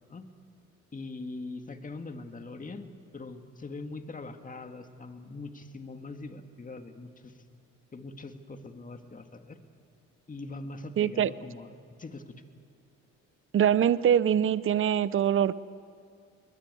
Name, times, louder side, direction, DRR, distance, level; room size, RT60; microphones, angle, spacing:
voice 1, 0.9-7.3 7.9-9.6 10.3-11.7 12.0-12.4, left 3 dB, 25° left, 1.9 m, -42 dB
voice 2, 11.0-11.3 13.5-15.5, right 9 dB, 45° right, 0.7 m, -23 dB
21.5 x 21.0 x 9.3 m
cardioid pair, 90°, 30 cm